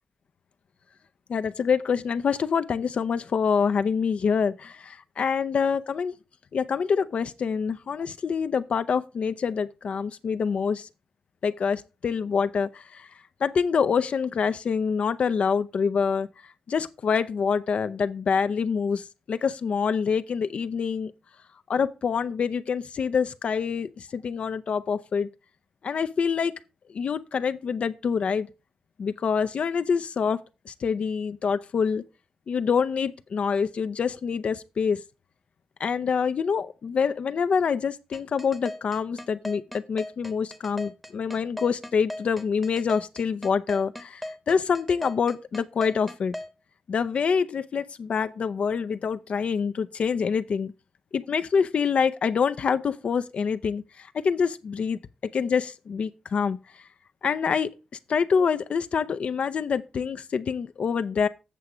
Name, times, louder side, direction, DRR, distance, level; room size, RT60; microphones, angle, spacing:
voice 1, 1.3-6.1 6.5-10.9 11.4-13.1 13.4-16.3 16.7-21.1 21.7-25.3 25.8-26.5 26.9-28.5 29.0-30.4 30.7-32.0 32.5-35.0 35.8-46.3 46.9-50.7 51.1-55.0 55.3-56.6 57.2-57.7 58.1-61.3, left 6 dB, 55° left, 0.5 m, -26 dB
sound 1, 38.1-46.5, left 1 dB, ahead, 0.9 m, -37 dB
8.2 x 7.1 x 4.9 m
wide cardioid pair, 155°, 2 cm